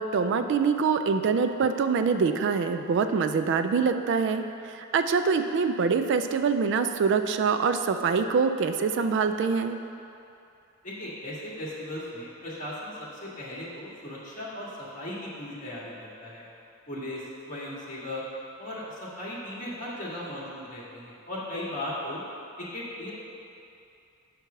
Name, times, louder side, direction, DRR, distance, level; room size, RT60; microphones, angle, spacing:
voice 1, 0.0-9.8, right 5 dB, 55° right, 9 dB, 0.3 m, -25 dB
voice 2, 10.8-14.7 14.9-16.4 16.9-18.2 18.6-22.2 22.6-23.1, left 1 dB, 35° left, -7 dB, 1.8 m, -37 dB
7.8 x 4.6 x 5.7 m, 2.6 s
head